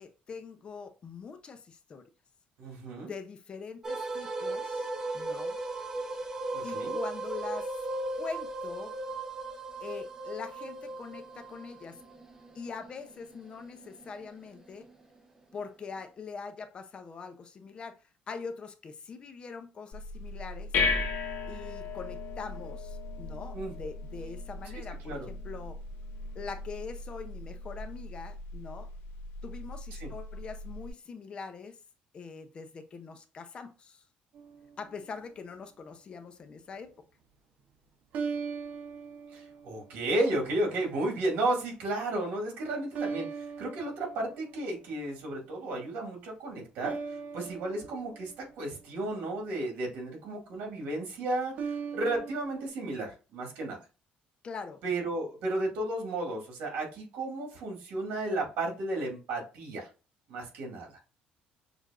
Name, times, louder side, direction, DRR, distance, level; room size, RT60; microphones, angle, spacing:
voice 1, 0.0-2.0 3.1-5.6 6.6-7.7 8.1-9.0 9.8-12.0 12.5-14.9 15.5-20.7 21.5-25.8 26.3-28.9 29.4-31.8 32.1-34.0 34.8-36.9 54.4-54.8, left 5 dB, 30° left, 0.5 m, -43 dB
voice 2, 2.6-3.1 6.5-7.0 23.5-23.8 25.0-25.3 30.0-30.1 39.3-47.0 47.3-53.8 54.8-59.9 60.3-60.9, right 2 dB, 75° right, 2.0 m, -33 dB
sound 1, 3.8-15.0, right 2 dB, 15° right, 0.6 m, -37 dB
sound 2, 19.9-30.9, left 3 dB, 80° left, 1.3 m, -37 dB
sound 3, 34.3-35.2 38.1-40.2 40.7-41.2 42.9-44.9 46.8-49.3 51.5-52.7, right 5 dB, 55° right, 0.6 m, -40 dB
6.4 x 2.5 x 2.4 m
cardioid pair, 155°, 3 cm